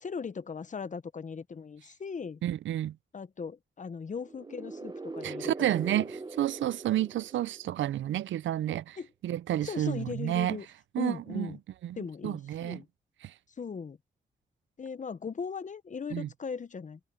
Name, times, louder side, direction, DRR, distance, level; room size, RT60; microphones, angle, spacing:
voice 1, 0.0-2.4 3.1-5.8 9.0-9.1 9.6-10.7 11.0-11.6 12.0-12.9 13.6-14.0 14.8-17.0, left 5 dB, 40° left, 0.9 m, -38 dB
voice 2, 2.4-3.0 5.2-9.0 9.2-10.6 10.9-11.5 11.8-12.8 13.2-13.3 16.1-16.3, right 12 dB, 85° right, 0.4 m, -30 dB
sound 1, 4.2-8.0, right 3 dB, 20° right, 1.0 m, -41 dB
cardioid pair, 90°, 19 cm